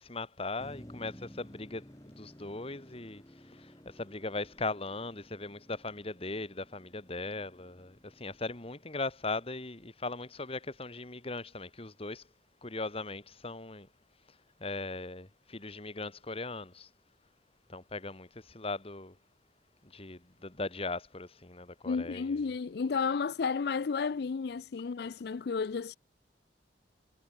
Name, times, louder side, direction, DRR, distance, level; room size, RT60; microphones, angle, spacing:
voice 1, 0.0-12.2 12.6-13.9 14.6-16.9 17.7-19.2 19.8-22.5, left 3 dB, 35° left, 2.0 m, -39 dB
Motor vehicle (road), 0.6-9.6, equal, 20° left, 3.9 m, -55 dB
voice 2, 21.9-26.0, left 5 dB, 65° left, 0.4 m, -32 dB
head